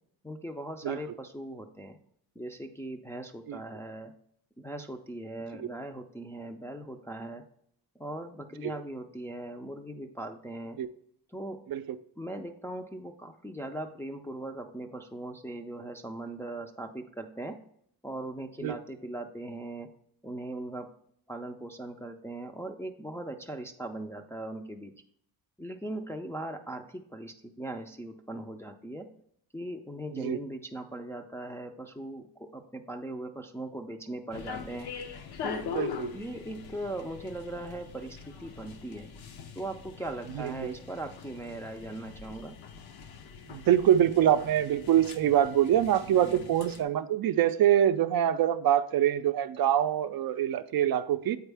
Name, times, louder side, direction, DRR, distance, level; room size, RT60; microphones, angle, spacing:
voice 1, 0.2-2.0 2.4-4.1 4.6-7.4 8.0-10.8 11.3-11.6 12.2-17.5 18.0-19.9 20.2-20.9 21.3-24.9 25.6-29.1 29.5-34.9 35.4-35.7 36.1-39.1 39.6-42.5 46.2-46.4, right 1 dB, 5° left, 2 dB, 0.4 m, -39 dB
sound 1, 34.3-46.8, left 6 dB, 70° left, 0.8 m, -42 dB
voice 2, 35.7-36.1 40.3-40.7 43.5-51.4, right 10 dB, 60° right, 10 dB, 0.5 m, -25 dB
8.0 x 4.5 x 3.4 m, 0.67 s
cardioid pair, 145°, 40 cm